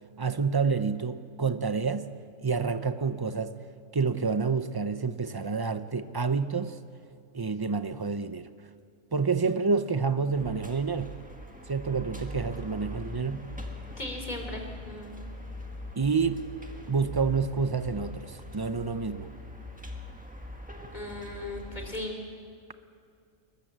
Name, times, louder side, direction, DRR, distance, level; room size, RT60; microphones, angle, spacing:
voice 1, 0.2-2.1 2.4-3.5 3.9-6.8 7.3-8.5 9.1-11.1 11.7-13.4 16.0-16.4 16.9-19.3, right 5 dB, 35° right, 11 dB, 0.3 m, -28 dB
sound 1, 10.3-22.0, left 1 dB, 5° right, 1.5 m, -42 dB
voice 2, 14.0-15.1 20.9-22.2, left 1 dB, 30° left, 2 dB, 3.5 m, -37 dB
22.0 x 20.5 x 7.4 m, 2.2 s
omnidirectional pair, 1.4 m